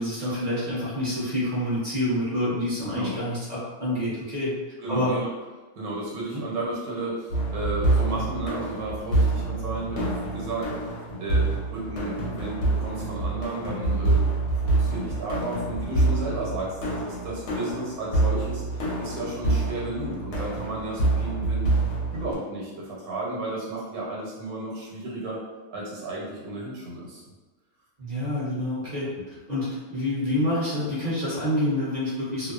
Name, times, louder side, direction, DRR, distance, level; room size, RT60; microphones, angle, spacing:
voice 1, 0.0-4.5 4.9-5.1 6.3-6.4 28.0-29.1 29.5-32.5, left 1 dB, 35° right, -9 dB, 0.8 m, -27 dB
voice 2, 4.8-5.3 5.8-14.3 14.5-21.7 22.1-25.4 25.7-27.2, right 2 dB, 90° right, -4 dB, 1.3 m, -33 dB
sound 1, 7.3-22.3, right 2 dB, 60° left, 0.8 m, -26 dB
2.7 x 2.1 x 2.4 m, 1.2 s
omnidirectional pair, 1.6 m